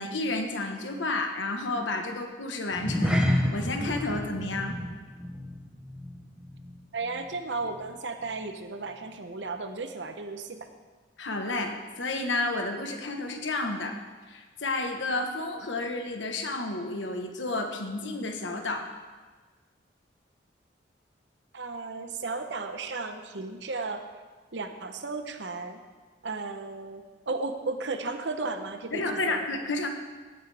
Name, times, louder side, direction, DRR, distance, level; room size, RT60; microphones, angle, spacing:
voice 1, 0.0-4.8 11.2-14.0 14.3-18.9 28.9-29.9, left 2 dB, 85° left, 4 dB, 1.2 m, -31 dB
sound 1, 2.7-7.4 7.6-7.9 8.4-8.5, left 1 dB, 5° right, 0.9 m, -30 dB
voice 2, 6.9-10.7 21.5-24.0 24.5-25.8 26.2-29.4, right 3 dB, 70° right, 7 dB, 0.9 m, -34 dB
17.0 x 8.6 x 3.5 m, 1.4 s
head